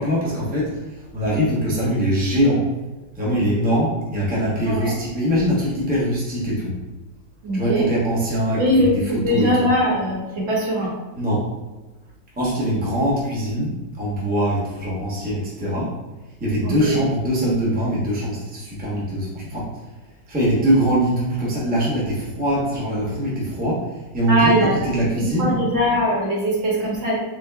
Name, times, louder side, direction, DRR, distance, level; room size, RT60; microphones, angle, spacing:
voice 1, 0.0-2.7 3.1-6.8 7.5-9.7 11.1-11.5 12.4-15.9 16.4-19.7 20.3-24.5 24.8-25.6, equal, 15° right, -6 dB, 0.4 m, -22 dB
voice 2, 7.4-7.9 8.6-10.9 16.6-17.0 24.3-24.9 25.2-27.1, equal, 85° right, -5 dB, 2.1 m, -21 dB
3.8 x 3.8 x 2.2 m, 1.1 s
omnidirectional pair, 2.1 m